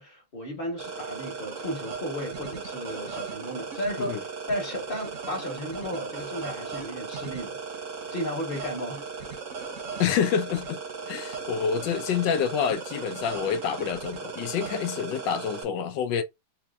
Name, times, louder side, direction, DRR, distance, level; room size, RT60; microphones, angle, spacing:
voice 1, 0.0-7.6 8.1-9.0, equal, 30° left, 1.5 m, -34 dB
sound 1, 0.8-15.6, right 5 dB, 50° right, 1.0 m, -37 dB
voice 2, 10.0-10.8 11.0-16.2, left 7 dB, 70° left, 1.2 m, -27 dB
4.2 x 2.9 x 2.3 m
omnidirectional pair, 2.2 m